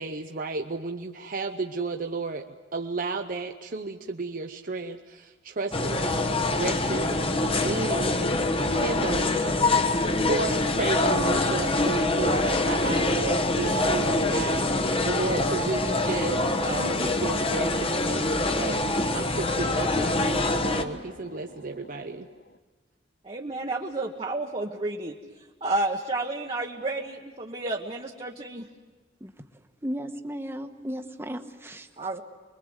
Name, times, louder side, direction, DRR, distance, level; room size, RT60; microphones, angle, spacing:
voice 1, 0.0-9.9 10.3-22.3, right 3 dB, 50° right, 4 dB, 0.8 m, -33 dB
sound 1, 5.7-20.8, left 2 dB, 30° left, 1.2 m, -25 dB
sound 2, 6.0-22.6, left 3 dB, 65° left, 1.1 m, -41 dB
voice 2, 23.2-25.2 25.6-28.7 32.0-32.2, right 2 dB, 30° right, 0 dB, 1.2 m, -31 dB
voice 3, 29.8-31.9, equal, 15° right, 6 dB, 1.3 m, -35 dB
25.5 x 22.0 x 8.0 m, 1.4 s
head